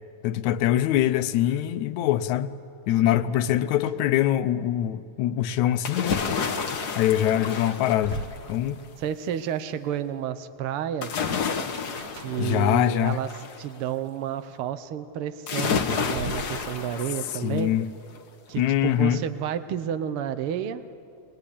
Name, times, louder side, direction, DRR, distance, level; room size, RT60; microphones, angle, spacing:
voice 1, 0.2-2.5 2.9-6.2 7.0-8.2 8.5-8.8 12.4-13.2 17.4-17.9 18.6-19.2, left 12 dB, 75° left, 12 dB, 2.0 m, -23 dB
voice 2, 2.9-3.3 9.0-11.3 12.1-17.7 18.5-21.0, right 9 dB, 85° right, 12 dB, 1.2 m, -31 dB
sound 1, 3.5-4.3 4.6-4.7 6.9-7.0 7.4-9.2 11.9-12.9 15.4-17.1, right 3 dB, 55° right, 1.5 m, -41 dB
sound 2, 5.8-8.7 11.0-13.6 15.5-17.7 18.2-18.3, left 6 dB, 55° left, 1.1 m, -30 dB
24.5 x 21.0 x 10.0 m, 2.5 s
omnidirectional pair, 3.6 m